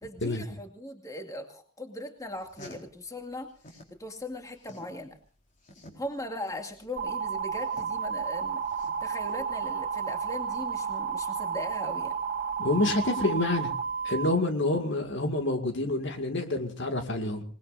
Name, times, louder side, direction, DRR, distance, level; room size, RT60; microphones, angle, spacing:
voice 1, 0.0-3.5 4.0-5.2 6.0-8.6 9.0-12.2, left 1 dB, 15° left, 4 dB, 2.3 m, -39 dB
sound 1, 2.2-4.0 4.3-9.3, left 2 dB, 40° left, 4.4 m, -51 dB
sound 2, 7.0-14.3, right 6 dB, 45° right, 1.9 m, -32 dB
voice 2, 12.6-13.7 14.0-17.4, left 2 dB, 65° left, 5 dB, 2.2 m, -27 dB
26.5 x 20.0 x 2.6 m, 0.41 s
head